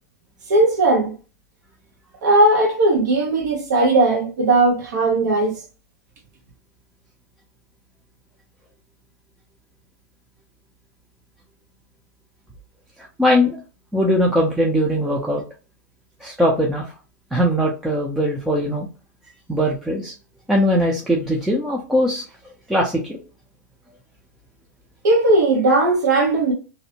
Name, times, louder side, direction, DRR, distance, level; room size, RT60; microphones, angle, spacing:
voice 1, 0.5-1.1 2.2-5.6 25.0-26.5, right 2 dB, 85° right, 0.9 m, -17 dB
voice 2, 13.2-13.6 13.9-15.4 16.2-16.9 17.3-18.9 19.5-20.1 20.5-22.2 22.7-23.2, equal, 5° right, 0.4 m, -20 dB
2.6 x 2.0 x 2.7 m
supercardioid pair, 145°, 9 cm